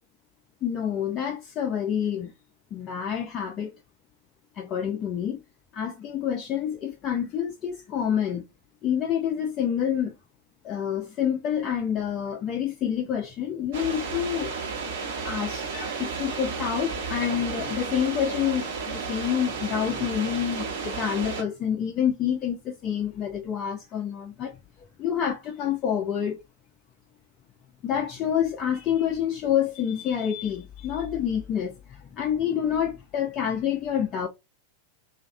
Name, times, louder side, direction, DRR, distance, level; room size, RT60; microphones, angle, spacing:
voice 1, 0.6-2.3 2.7-3.7 4.6-5.4 5.7-8.4 8.8-10.1 10.6-14.5 15.2-24.6 25.0-26.4 27.8-34.3, left 9 dB, 30° left, 0.3 m, -28 dB
sound 1, 13.7-21.4, right 5 dB, 55° right, 0.8 m, -33 dB
2.3 x 2.0 x 2.6 m
figure-of-eight pair, 90°, 0 cm